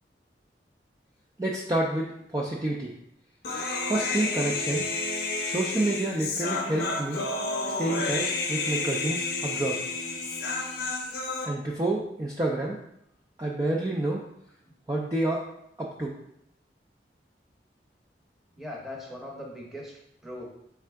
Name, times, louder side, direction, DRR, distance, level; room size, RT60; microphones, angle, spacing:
voice 1, 1.4-2.9 3.9-4.8 5.4-7.2 7.6-9.8 11.4-12.8 13.4-14.2 14.9-15.4 15.8-16.1, right 2 dB, 20° right, -3 dB, 0.4 m, -29 dB
Human voice, 3.4-11.5, left 3 dB, 60° left, 0.6 m, -30 dB
voice 2, 18.5-20.4, left 1 dB, ahead, -2 dB, 0.8 m, -40 dB
3.7 x 3.4 x 3.4 m, 0.78 s
head